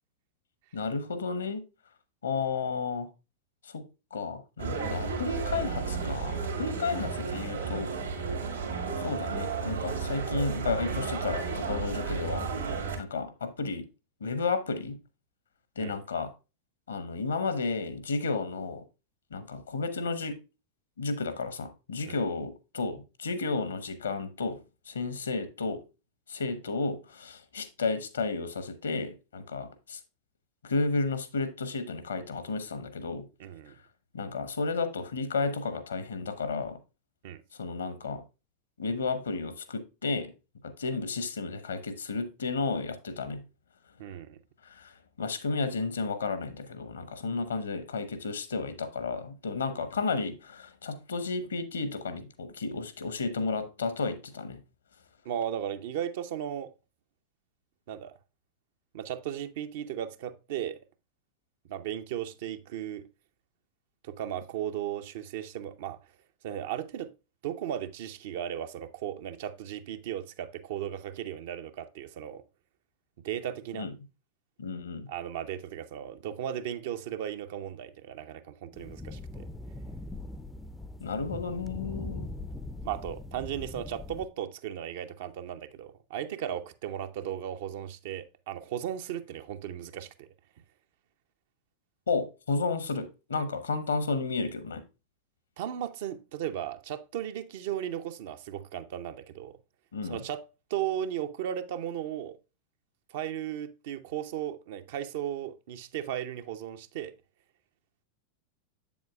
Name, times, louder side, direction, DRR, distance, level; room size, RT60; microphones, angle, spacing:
voice 1, 0.7-1.6 2.2-3.1 3.6-3.8 4.1-7.9 9.0-12.5 13.0-13.9 14.2-15.0 15.8-16.3 16.9-18.8 19.3-20.4 21.0-24.6 24.9-25.8 26.3-30.0 30.6-33.3 34.1-36.8 37.6-38.2 38.8-40.3 40.6-43.4 44.6-54.6 73.8-73.9 74.6-75.1 81.0-82.3 92.1-94.8 99.9-100.2, left 4 dB, 70° left, 0.9 m, -32 dB
sound 1, 4.6-13.0, right 5 dB, 75° right, 2.1 m, -33 dB
voice 2, 33.4-33.8 37.2-37.4 44.0-44.4 55.2-56.7 57.9-58.1 58.9-60.8 61.7-63.1 64.0-66.0 66.4-67.1 67.4-72.4 73.2-73.9 75.1-79.5 82.8-90.3 95.6-99.6 100.0-102.4 103.1-107.1, right 10 dB, 55° right, 0.6 m, -36 dB
sound 2, 78.7-84.3, left 2 dB, 10° left, 0.5 m, -41 dB
7.7 x 7.2 x 2.3 m
figure-of-eight pair, 90°, 0 cm